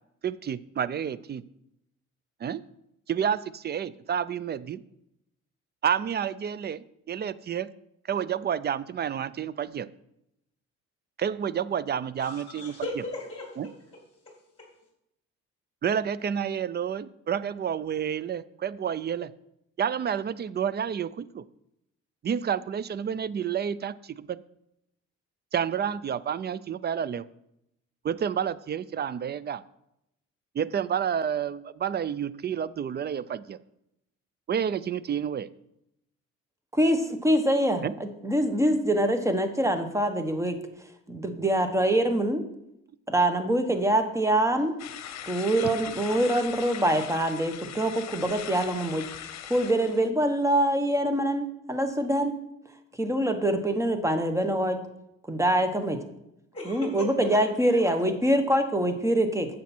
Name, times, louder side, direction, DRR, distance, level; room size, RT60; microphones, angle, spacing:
voice 1, 0.2-1.4 2.4-2.6 3.1-4.8 5.8-7.7 8.1-9.9 11.2-12.7 13.6-13.7 15.8-19.3 19.8-21.4 22.2-24.4 25.5-27.3 28.0-29.6 30.5-33.6 34.5-35.5 37.8-37.9, right 8 dB, 35° right, 18 dB, 0.4 m, -29 dB
voice 2, 12.2-13.7 14.3-14.7 56.5-57.3 57.7-57.8, left 2 dB, 20° left, 0 dB, 2.4 m, -37 dB
voice 3, 36.7-40.6 41.1-42.4 43.1-44.7 45.3-49.0 49.5-52.4 53.0-54.8 55.3-56.0 56.7-59.5, right 1 dB, 10° right, 7 dB, 1.2 m, -24 dB
sound 1, 44.8-50.1, left 10 dB, 65° left, 0.8 m, -40 dB
9.3 x 7.2 x 4.4 m, 0.82 s
cardioid pair, 90°, 30 cm